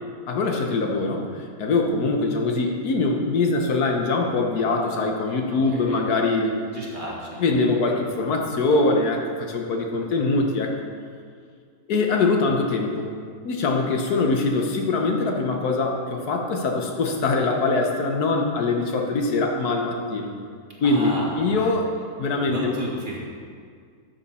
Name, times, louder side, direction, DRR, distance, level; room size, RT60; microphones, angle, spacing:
voice 1, 0.3-1.3 1.6-6.6 7.4-10.7 11.9-13.1 13.4-20.3 20.8-21.9 22.2-22.8, left 3 dB, 80° left, 2 dB, 1.5 m, -23 dB
voice 2, 5.5-6.0 6.7-7.4 20.8-21.7 22.4-23.2, right 1 dB, 30° right, -4 dB, 1.8 m, -33 dB
12.5 x 7.2 x 4.2 m, 2.1 s
omnidirectional pair, 1.6 m